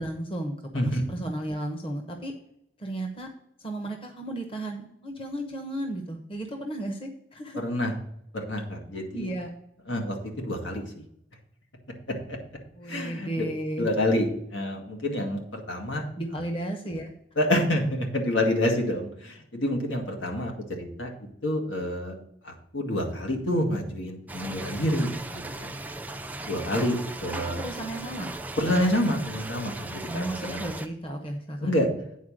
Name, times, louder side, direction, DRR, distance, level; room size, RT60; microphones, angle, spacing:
voice 1, 0.0-0.6 0.8-2.3 2.8-3.3 3.6-7.6 8.9-9.5 12.7-13.9 16.2-17.1 27.3-28.3 30.1-31.8, right 1 dB, 30° left, 3 dB, 1.0 m, -34 dB
voice 2, 7.6-7.9 8.3-9.3 9.9-10.9 12.3-12.4 12.8-13.5 13.8-16.0 17.4-21.1 21.4-22.2 22.4-25.7 26.5-27.6 28.6-30.6 31.6-31.9, left 1 dB, 85° left, 2 dB, 1.9 m, -28 dB
sound 1, 24.3-30.9, right 2 dB, 10° right, 0.4 m, -37 dB
9.3 x 4.4 x 6.4 m, 0.77 s
head